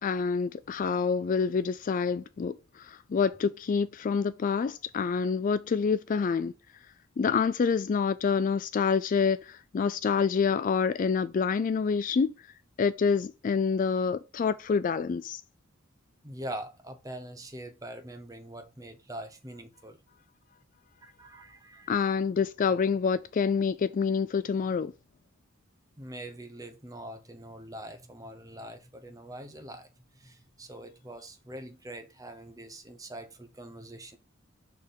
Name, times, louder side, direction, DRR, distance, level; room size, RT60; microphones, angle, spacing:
voice 1, 0.0-6.5 7.2-12.3 12.8-15.4 21.9-24.9, left 5 dB, 40° left, 0.3 m, -27 dB
voice 2, 16.2-20.0 21.0-21.9 26.0-34.2, right 1 dB, 15° right, 0.9 m, -43 dB
6.7 x 3.5 x 5.5 m
head